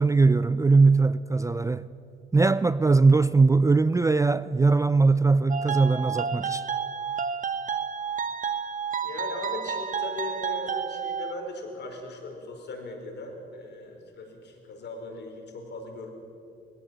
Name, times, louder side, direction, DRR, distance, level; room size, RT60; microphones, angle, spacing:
voice 1, 0.0-1.9 2.3-6.6, right 3 dB, 15° right, 0.4 m, -20 dB
sound 1, 5.5-11.3, right 6 dB, 40° right, 1.0 m, -31 dB
voice 2, 9.0-16.1, left 2 dB, 60° left, 4.8 m, -38 dB
21.0 x 17.0 x 7.6 m
cardioid pair, 90°, 20 cm